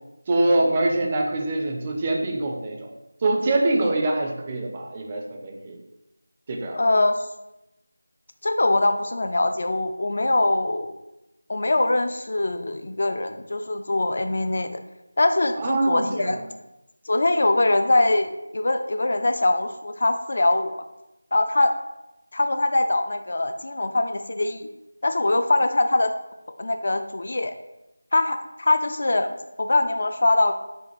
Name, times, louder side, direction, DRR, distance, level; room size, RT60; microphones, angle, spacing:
voice 1, 0.3-2.9 3.2-5.8 6.5-6.8 15.6-16.5, right 2 dB, 20° right, 2 dB, 0.4 m, -24 dB
voice 2, 6.7-7.2 8.4-11.0 11.5-14.8 15.2-16.4 17.1-20.8 21.3-21.7 22.3-24.7 25.0-26.1 26.6-27.5 28.1-30.5, left 2 dB, 50° left, 8 dB, 0.3 m, -22 dB
6.2 x 2.4 x 3.0 m, 0.94 s
figure-of-eight pair, 175°, 0 cm